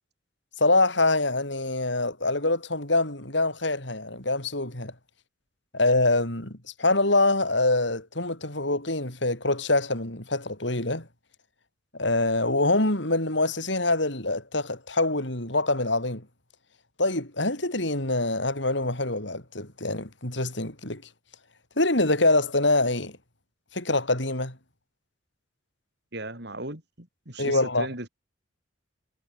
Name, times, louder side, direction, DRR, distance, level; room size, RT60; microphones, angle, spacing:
voice 1, 0.6-4.9 5.7-11.1 11.9-16.2 17.0-21.0 21.8-23.2 23.7-24.6 27.4-27.9, left 2 dB, 65° left, 6.2 m, -25 dB
voice 2, 26.1-28.1, right 2 dB, 55° right, 7.7 m, -37 dB
head